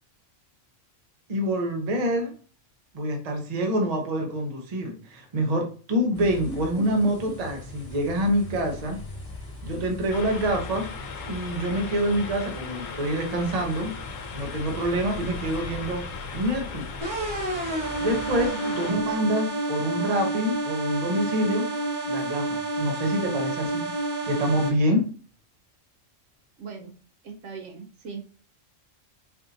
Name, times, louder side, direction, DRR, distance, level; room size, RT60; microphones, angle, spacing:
voice 1, 1.3-2.3 2.9-9.0 9.6-10.9 11.3-13.9 14.3-16.0 16.3-16.8 18.0-21.6 22.1-23.9 24.2-25.0, equal, 35° right, 2 dB, 0.7 m, -26 dB
sound 1, 6.1-18.5, left 2 dB, 30° left, 1.0 m, -40 dB
voice 2, 6.5-6.9 18.2-19.2 26.6-26.9 27.2-28.3, right 4 dB, 70° right, 3 dB, 0.9 m, -39 dB
sound 2, 10.1-18.9, left 5 dB, 80° left, 1.0 m, -39 dB
sound 3, 17.0-24.7, right 2 dB, 90° right, 1.7 m, -29 dB
4.2 x 2.7 x 2.7 m, 0.39 s
omnidirectional pair, 1.3 m